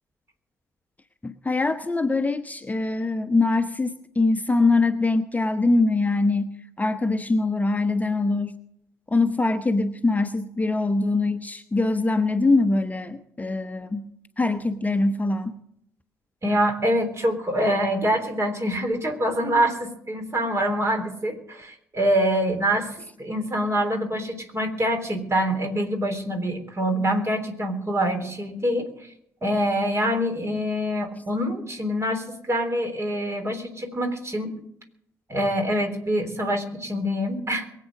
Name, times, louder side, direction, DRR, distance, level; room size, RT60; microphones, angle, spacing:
voice 1, 1.2-8.6 9.1-14.1 14.4-15.6, left 3 dB, 20° left, 9 dB, 1.0 m, -23 dB
voice 2, 16.4-29.1 29.4-34.5 35.3-37.7, equal, 30° right, 6 dB, 3.6 m, -25 dB
22.5 x 8.5 x 6.3 m, 0.75 s
hypercardioid pair, 45°, 9 cm